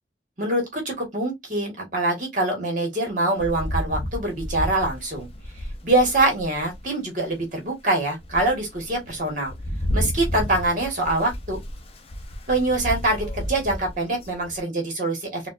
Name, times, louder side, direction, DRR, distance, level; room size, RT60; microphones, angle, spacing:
voice 1, 0.4-5.3 5.8-9.5 9.9-11.6 12.5-15.4, right 2 dB, 45° right, 1.6 m, -24 dB
Rain, 3.4-6.9 7.4-7.5 8.0-14.6, equal, 30° left, 0.6 m, -32 dB
4.0 x 2.4 x 2.4 m
head